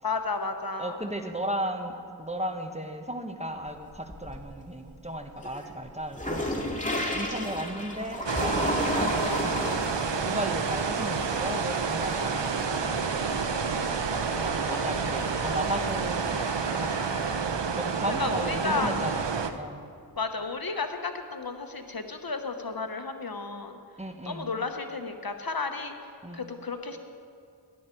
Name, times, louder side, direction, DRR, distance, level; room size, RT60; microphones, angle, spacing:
voice 1, 0.0-1.1 14.7-14.8 18.2-19.0 20.2-23.8 24.2-25.9 26.3-27.0, left 4 dB, 55° left, 6 dB, 1.0 m, -33 dB
voice 2, 0.8-6.7 7.1-9.8 10.2-16.4 16.7-17.3 17.7-19.8 24.0-24.5 26.2-26.4, equal, 15° right, 5 dB, 1.2 m, -35 dB
sound 1, 3.7-4.6 5.0-17.4, left 1 dB, 20° left, 2.1 m, -35 dB
sound 2, 8.2-19.5, right 5 dB, 80° right, 0.8 m, -29 dB
17.5 x 11.5 x 4.5 m, 2.4 s
wide cardioid pair, 40°, 43 cm